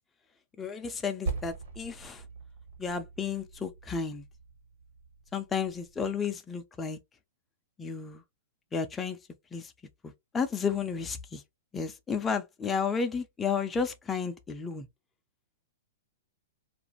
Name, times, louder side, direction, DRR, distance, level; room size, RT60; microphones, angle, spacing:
voice 1, 0.6-2.2 2.8-4.3 5.3-7.0 7.8-8.2 8.7-9.2 9.5-9.7 10.0-11.4 11.7-14.9, left 6 dB, 10° left, 0.4 m, -32 dB
Percussion, 1.3-6.1, right 4 dB, 75° right, 1.2 m, -41 dB
2.5 x 2.4 x 2.9 m
hypercardioid pair, 155°, 0 cm